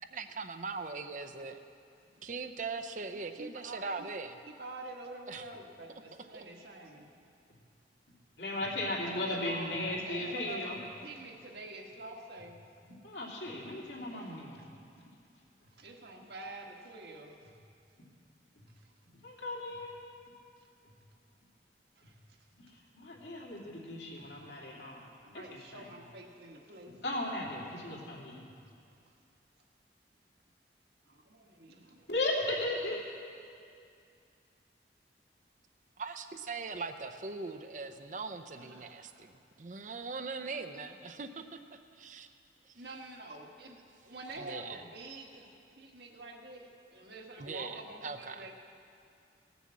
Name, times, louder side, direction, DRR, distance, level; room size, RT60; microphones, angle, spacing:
voice 1, 0.1-1.6 2.2-4.4 5.3-5.4 6.3-6.4 36.0-41.6 42.0-42.3 42.6-42.8 44.4-44.8 47.4-48.5, right 4 dB, 45° right, 8 dB, 0.6 m, -41 dB
voice 2, 3.4-4.1 4.4-7.1 8.8-12.6 14.6-14.7 15.7-17.5 18.8-18.9 22.0-22.2 25.2-27.0 31.0-32.1 32.5-32.9 38.5-39.3 42.7-48.5, right 2 dB, 65° right, 1 dB, 1.5 m, -47 dB
voice 3, 8.4-10.8 13.0-14.6 19.2-19.9 22.9-25.1 25.3-25.8 27.0-28.3 32.1-33.0, left 2 dB, 75° left, -3 dB, 2.8 m, -36 dB
18.0 x 7.0 x 7.5 m, 2.4 s
head